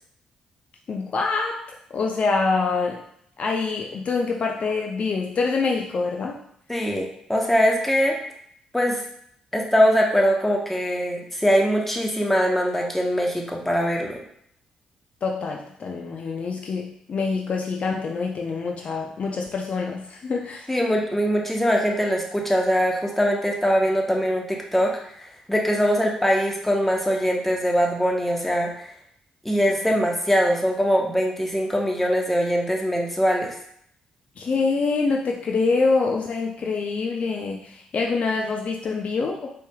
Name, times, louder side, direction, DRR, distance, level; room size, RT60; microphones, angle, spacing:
voice 1, 0.9-1.6 1.9-3.0 3.4-6.4 15.2-20.7 34.4-39.5, left 4 dB, 50° left, 0 dB, 0.5 m, -25 dB
voice 2, 6.7-8.1 8.7-9.0 9.5-14.2 20.7-25.1 25.5-28.9 29.4-33.6, equal, 5° left, 0 dB, 1.0 m, -22 dB
4.3 x 3.3 x 2.3 m, 0.69 s
hypercardioid pair, 45°, 3 cm